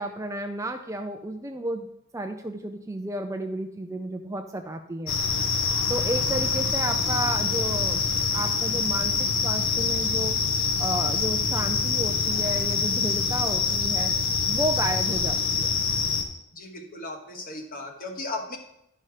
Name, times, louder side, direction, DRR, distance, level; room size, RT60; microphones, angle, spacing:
voice 1, 0.0-1.9 2.1-5.2 5.9-10.4 10.8-14.1 14.5-15.7, right 1 dB, 15° right, 5 dB, 0.4 m, -32 dB
sound 1, 5.1-16.2, left 5 dB, 60° left, 1.1 m, -25 dB
voice 2, 16.5-18.6, left 2 dB, 40° left, 4 dB, 1.3 m, -36 dB
11.5 x 5.6 x 4.9 m, 0.81 s
head